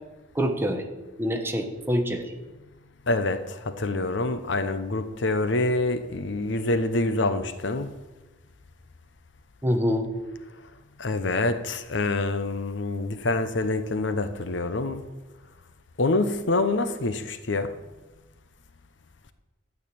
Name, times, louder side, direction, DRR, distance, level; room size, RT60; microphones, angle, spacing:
voice 1, 0.3-0.8 1.2-2.2 9.6-10.1, equal, 10° right, 4 dB, 1.3 m, -25 dB
voice 2, 3.1-3.4 3.8-7.9 11.0-15.0 16.0-17.7, left 2 dB, 75° left, 10 dB, 0.9 m, -26 dB
12.0 x 6.6 x 8.6 m, 1.1 s
head